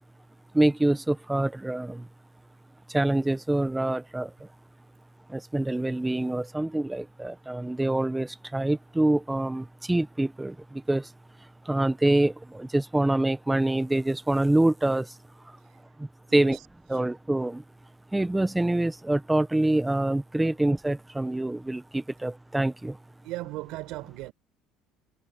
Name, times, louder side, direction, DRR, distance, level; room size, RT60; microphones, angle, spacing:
voice 1, 0.5-2.1 2.9-4.5 5.3-11.1 11.6-15.1 16.0-16.6 16.9-17.6 18.1-23.0, right 1 dB, 5° right, 1.2 m, -26 dB
voice 2, 15.6-16.0 16.3-17.1 23.2-24.3, right 19 dB, 65° right, 5.2 m, -39 dB
cardioid pair, 160°, 0 cm